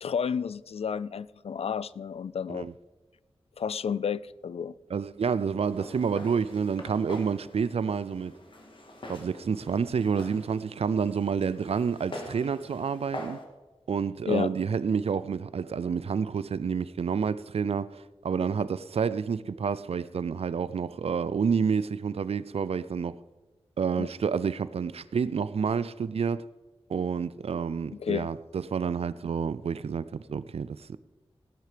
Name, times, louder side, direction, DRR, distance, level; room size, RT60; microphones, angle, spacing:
voice 1, 0.0-2.7 3.6-4.7 14.3-14.5 24.0-24.1 28.0-28.3, left 7 dB, 75° left, 0.4 m, -31 dB
voice 2, 4.9-8.3 9.1-13.4 13.9-23.2 23.8-26.5 26.9-31.0, right 6 dB, 75° right, 0.4 m, -29 dB
Walk footsteps, 5.6-13.4, left 1 dB, 55° left, 2.3 m, -44 dB
16.5 x 9.5 x 5.1 m
wide cardioid pair, 95°, 10 cm